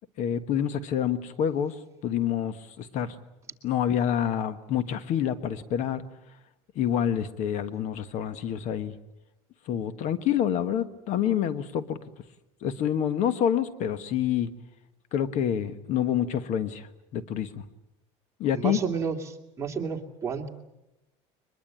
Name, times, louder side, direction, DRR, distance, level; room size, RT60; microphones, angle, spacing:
voice 1, 0.2-1.7 2.0-3.1 3.6-6.0 6.7-8.9 9.7-12.0 12.6-14.5 15.1-16.9 17.1-17.6 18.4-18.8, left 9 dB, 55° left, 12 dB, 1.4 m, -27 dB
voice 2, 18.5-20.5, right 6 dB, 20° right, 1 dB, 2.8 m, -31 dB
23.0 x 21.5 x 8.9 m, 0.92 s
cardioid pair, 130°, 15 cm